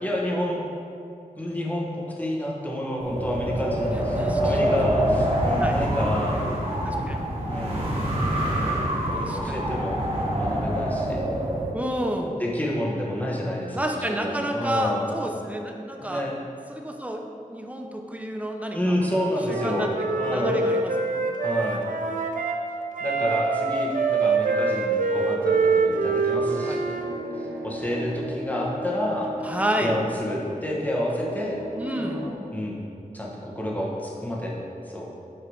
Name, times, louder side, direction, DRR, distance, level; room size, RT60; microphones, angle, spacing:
voice 1, 0.0-0.6 1.4-1.9 2.2-6.4 7.5-8.0 9.1-11.3 12.4-15.1 16.0-16.3 18.7-20.6 21.4-21.8 23.0-26.8 27.3-29.3 29.8-31.6 32.5-32.8 33.1-34.6 34.9-35.1, left 1 dB, 10° left, -3 dB, 1.4 m, -29 dB
Wind, 3.0-11.7, right 1 dB, 40° right, 1.9 m, -25 dB
voice 2, 4.2-4.6 5.5-5.8 6.8-7.2 9.2-9.6 11.7-12.4 13.7-16.2 16.7-17.2 17.5-19.0 19.5-19.9 20.3-21.1 26.7-26.8 29.4-30.0 31.8-32.2, equal, 10° right, 2 dB, 0.7 m, -30 dB
Wind instrument woodwind instrument, 19.0-22.6 22.9-27.1, right 4 dB, 70° right, 0.7 m, -25 dB
sound 1, 25.3-32.3, equal, 85° right, 1.2 m, -37 dB
7.9 x 4.8 x 4.9 m, 2.6 s
wide cardioid pair, 95°, 15 cm